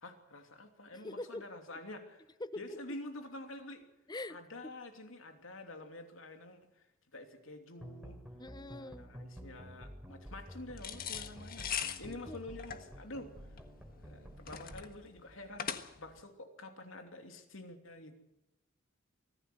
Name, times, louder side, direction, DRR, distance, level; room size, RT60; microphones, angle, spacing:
voice 1, 0.0-2.3 2.6-3.8 4.3-6.8 7.1-8.2 8.8-11.7 11.9-13.3 14.0-15.7 16.0-18.2, left 2 dB, 75° left, 5 dB, 3.0 m, -48 dB
voice 2, 1.0-1.4 2.4-2.8 4.1-4.4 8.4-9.2 12.0-12.4, left 2 dB, 20° left, 15 dB, 0.7 m, -43 dB
sound 1, 7.8-14.8, equal, 5° right, 3.3 m, -50 dB
sound 2, 10.8-16.2, left 8 dB, 45° left, 1.5 m, -41 dB
24.0 x 16.0 x 7.9 m, 0.91 s
head